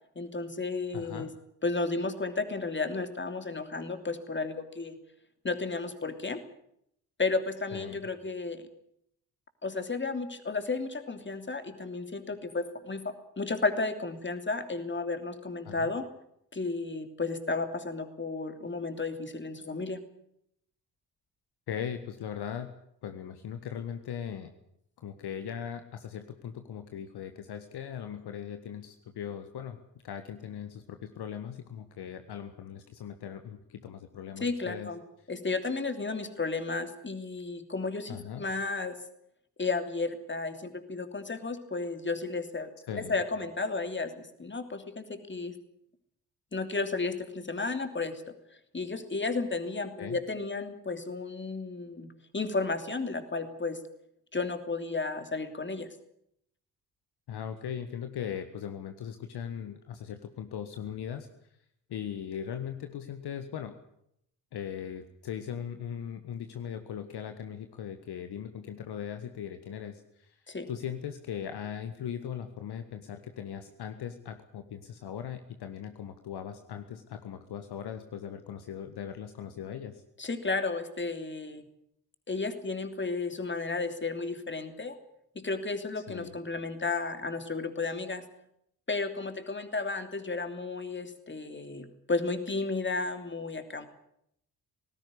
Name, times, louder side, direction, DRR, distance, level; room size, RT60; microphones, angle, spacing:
voice 1, 0.1-1.3 1.6-5.0 5.4-6.4 7.2-8.6 9.6-16.1 16.5-20.0 34.4-35.0 35.3-39.0 39.6-45.5 46.5-48.3 48.7-53.8 54.3-55.9 70.5-70.7 80.2-81.6 82.3-85.0 85.3-88.2 88.9-93.9, left 3 dB, 25° left, 8 dB, 2.9 m, -33 dB
voice 2, 0.9-1.3 7.7-8.0 15.6-15.9 21.7-22.7 23.0-24.5 25.0-29.8 30.0-34.9 38.1-38.4 42.9-43.2 50.0-50.2 57.3-61.3 61.9-63.7 64.5-70.4 70.7-80.0 86.1-86.3, left 8 dB, 55° left, 8 dB, 1.6 m, -39 dB
18.5 x 16.5 x 9.9 m, 0.74 s
figure-of-eight pair, 40°, 47 cm